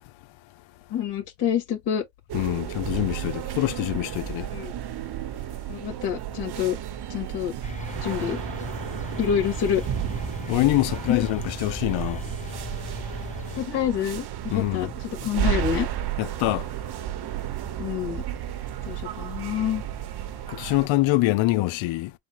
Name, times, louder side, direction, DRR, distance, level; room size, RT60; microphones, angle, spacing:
voice 1, 0.9-2.1 4.5-4.7 5.7-6.8 7.1-7.5 8.0-8.4 9.2-9.8 11.1-11.3 13.6-15.9 17.8-18.2 18.9-19.8, left 9 dB, 65° left, 2.1 m, -27 dB
voice 2, 2.3-4.5 10.5-12.3 14.5-14.9 16.2-16.7 20.5-22.1, left 18 dB, 85° left, 0.6 m, -25 dB
sound 1, 2.3-20.9, right 11 dB, 60° right, 0.9 m, -33 dB
sound 2, 7.6-13.7, left 5 dB, 20° left, 0.5 m, -37 dB
4.2 x 2.2 x 4.5 m
cardioid pair, 95°, 45 cm